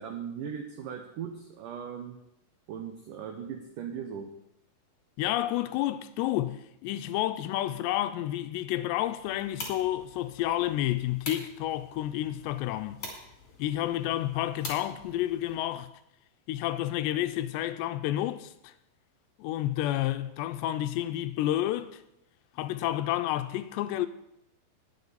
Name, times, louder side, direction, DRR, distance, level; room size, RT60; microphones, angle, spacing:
voice 1, 0.0-2.2 2.7-4.3, right 7 dB, 85° right, 1.8 m, -38 dB
voice 2, 5.2-13.0 13.6-15.9 16.5-18.7 19.4-22.0 22.6-24.1, left 13 dB, 85° left, 2.7 m, -30 dB
sound 1, 9.2-15.6, left 2 dB, 35° left, 3.5 m, -45 dB
20.0 x 7.8 x 4.1 m
omnidirectional pair, 5.1 m